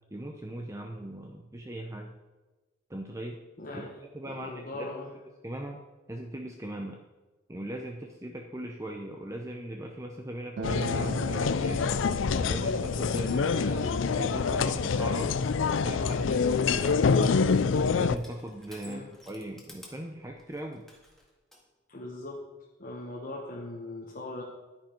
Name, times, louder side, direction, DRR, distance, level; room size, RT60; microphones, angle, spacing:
voice 1, 0.1-2.1 2.9-3.4 3.7-3.9 4.1-4.9 5.4-5.8 6.1-7.0 7.5-11.8 12.4-15.4 15.8-17.5 17.9-20.9, right 1 dB, 15° right, 2 dB, 0.7 m, -39 dB
voice 2, 3.6-5.1 18.8-19.1 21.9-22.4 22.8-24.4, left 2 dB, 45° left, -2 dB, 1.2 m, -40 dB
sound 1, 10.6-18.2, left 5 dB, 80° left, 0.4 m, -26 dB
Acoustic guitar, 10.6-15.8, right 6 dB, 60° right, 0.3 m, -43 dB
Crushing, 18.1-21.6, left 1 dB, ahead, 1.8 m, -55 dB
10.5 x 10.0 x 4.5 m, 1.2 s
head